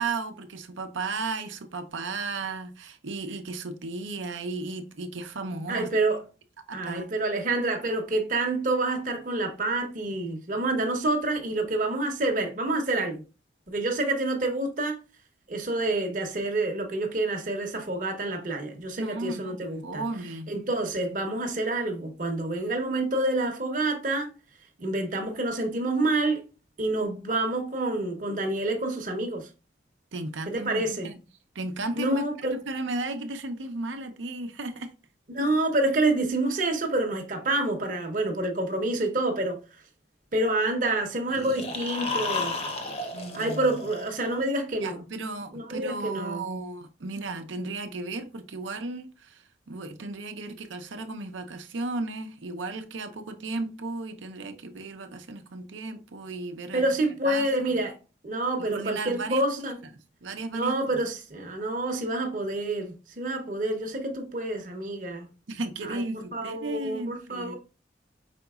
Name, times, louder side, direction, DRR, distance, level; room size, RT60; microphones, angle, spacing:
voice 1, 0.0-5.9 6.7-7.1 19.0-20.5 30.1-31.2 31.5-32.2 32.5-34.9 43.1-43.6 44.8-56.8 57.2-57.8 58.7-59.4 60.2-60.7 65.5-67.6, right 3 dB, 90° right, 0.7 m, -35 dB
voice 2, 5.7-6.2 6.7-13.2 13.7-15.0 15.5-20.0 20.5-24.3 24.8-26.4 26.8-29.5 30.5-31.1 32.0-32.6 35.3-39.6 40.3-42.6 43.3-45.0 45.5-46.4 56.7-58.0 58.2-59.8 60.5-65.3 65.8-66.0 66.3-67.6, right 2 dB, 45° right, 0.8 m, -28 dB
sound 1, 41.3-44.4, left 3 dB, 30° left, 0.7 m, -33 dB
5.1 x 3.9 x 2.3 m
head